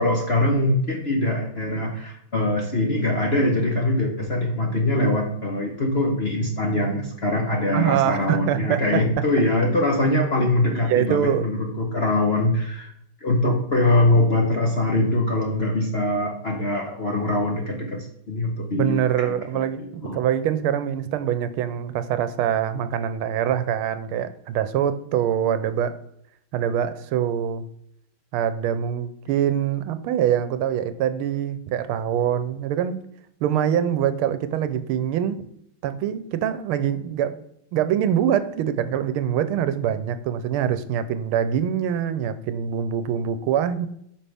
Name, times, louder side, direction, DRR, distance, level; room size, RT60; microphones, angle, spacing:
voice 1, 0.0-12.9 13.2-20.2, left 1 dB, 45° left, 1 dB, 0.8 m, -23 dB
voice 2, 7.7-9.0 10.7-11.5 18.7-26.0 26.5-27.7 28.3-33.0 33.4-35.5 35.8-37.4 37.7-43.9, right 9 dB, 80° right, 12 dB, 1.5 m, -24 dB
8.6 x 5.7 x 3.4 m, 0.74 s
omnidirectional pair, 2.4 m